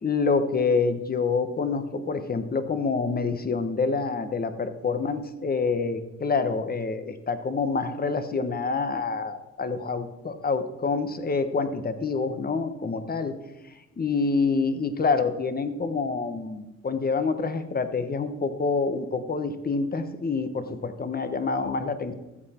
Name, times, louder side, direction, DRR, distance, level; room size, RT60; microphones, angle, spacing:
voice 1, 0.0-13.4 13.7-22.1, left 4 dB, 30° left, 10 dB, 1.1 m, -27 dB
14.0 x 7.8 x 4.3 m, 1.0 s
cardioid pair, 90°, 30 cm